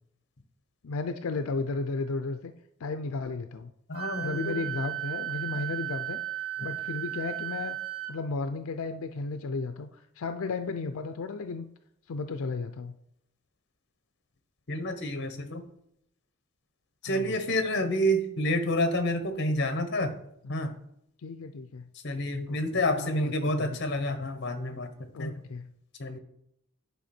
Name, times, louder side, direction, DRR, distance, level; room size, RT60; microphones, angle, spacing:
voice 1, 0.8-2.5 2.8-3.7 4.2-6.2 6.6-7.8 8.1-9.9 10.2-11.7 12.1-12.9 17.0-17.4 20.6-20.8 21.2-21.9 22.5-23.3 23.6-23.8 25.1-25.7, left 3 dB, 85° left, 9 dB, 0.5 m, -34 dB
voice 2, 3.9-4.7 6.6-6.7 14.7-15.6 17.0-20.2 20.5-20.7 22.0-25.3 26.0-26.2, left 1 dB, 55° left, 9 dB, 1.1 m, -29 dB
Wind instrument woodwind instrument, 3.9-8.1, right 14 dB, 90° right, 1.4 m, -35 dB
9.3 x 5.5 x 4.3 m, 0.77 s
head